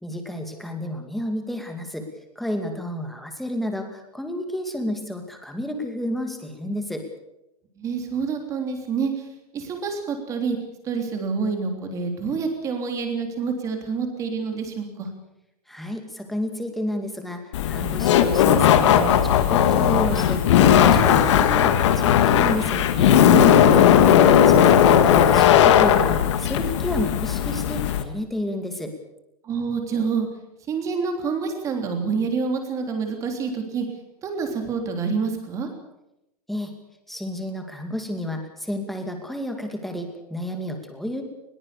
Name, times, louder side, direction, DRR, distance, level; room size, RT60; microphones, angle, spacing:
voice 1, 0.0-2.1 2.4-7.0 15.7-23.1 24.0-28.9 36.5-36.7 37.1-41.2, left 1 dB, ahead, 5 dB, 2.2 m, -31 dB
voice 2, 7.8-9.1 9.5-10.6 10.8-15.1 23.2-24.0 29.4-30.3 30.7-33.8 34.2-35.7, right 5 dB, 15° right, 4 dB, 3.3 m, -27 dB
Laughter, 17.5-28.0, left 9 dB, 50° left, 2.1 m, -17 dB
21.5 x 20.0 x 6.9 m, 0.86 s
supercardioid pair, 175°, 19 cm